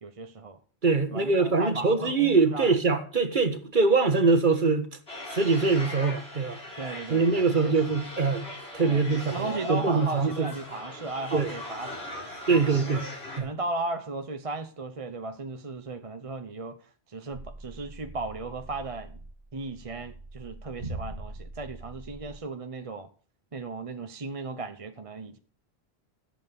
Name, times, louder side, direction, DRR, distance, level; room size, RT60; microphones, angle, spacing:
voice 1, 0.0-0.6 1.1-2.7 6.8-7.8 8.9-12.6 13.4-16.8 17.1-19.2 19.5-23.1 23.5-25.4, right 3 dB, 35° right, 0.9 m, -36 dB
voice 2, 0.8-4.9 5.3-6.6 7.1-8.5 8.7-10.5 11.3-11.5 12.5-13.1 13.4-13.5, right 4 dB, 50° right, 1.7 m, -23 dB
sound 1, 5.1-13.4, left 1 dB, 70° left, 5.0 m, -39 dB
sound 2, 17.3-22.4, right 2 dB, 70° right, 2.5 m, -42 dB
14.5 x 8.1 x 6.9 m
omnidirectional pair, 1.1 m